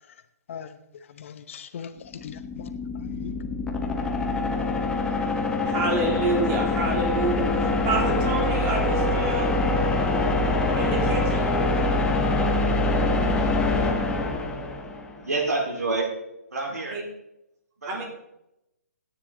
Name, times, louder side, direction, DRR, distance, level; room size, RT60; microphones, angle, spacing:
voice 1, 1.1-3.3, left 7 dB, 55° left, 10 dB, 0.9 m, -40 dB
sound 1, 2.1-15.2, left 2 dB, 10° left, 0.9 m, -24 dB
voice 2, 5.6-9.6 10.7-11.5 16.9-17.0 17.9-18.0, right 3 dB, 25° right, -1 dB, 3.1 m, -28 dB
voice 3, 15.2-16.1 16.5-17.0 17.8-18.1, right 3 dB, 80° right, -1 dB, 4.1 m, -27 dB
13.0 x 9.5 x 3.9 m, 0.85 s
hypercardioid pair, 140°, 9 cm